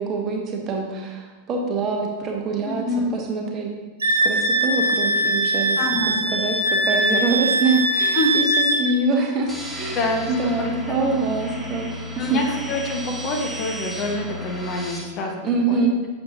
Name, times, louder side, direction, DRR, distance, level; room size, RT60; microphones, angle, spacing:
voice 1, 0.0-2.8 3.1-3.7 4.2-5.8 6.3-8.5 8.8-10.0 10.3-11.9 12.3-12.4 15.4-16.0, right 3 dB, 30° right, 1 dB, 1.2 m, -24 dB
voice 2, 2.6-3.1 5.8-6.3 8.1-8.4 9.9-11.1 12.2-15.4 15.7-16.1, left 2 dB, 35° left, 1 dB, 1.2 m, -27 dB
Wind instrument woodwind instrument, 4.0-8.8, right 1 dB, 70° right, 1.1 m, -21 dB
sound 1, 9.5-15.0, left 1 dB, ahead, 1.5 m, -34 dB
7.3 x 6.7 x 2.7 m, 1.3 s
figure-of-eight pair, 90°, 0 cm